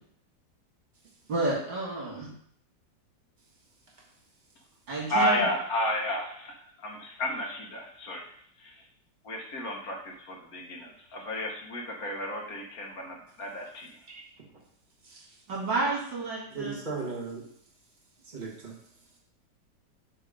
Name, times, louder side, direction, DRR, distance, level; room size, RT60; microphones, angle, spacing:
voice 1, 1.3-2.3 4.9-5.5 15.5-16.7, right 2 dB, 85° right, -4 dB, 2.9 m, -30 dB
voice 2, 5.1-6.3 6.8-8.2 9.3-10.0 10.5-10.6 11.1-13.1 13.4-13.6, equal, 60° left, 1 dB, 1.4 m, -30 dB
voice 3, 16.5-17.4 18.3-18.7, right 4 dB, 30° right, -3 dB, 1.4 m, -36 dB
7.4 x 3.0 x 5.1 m, 0.63 s
omnidirectional pair, 1.9 m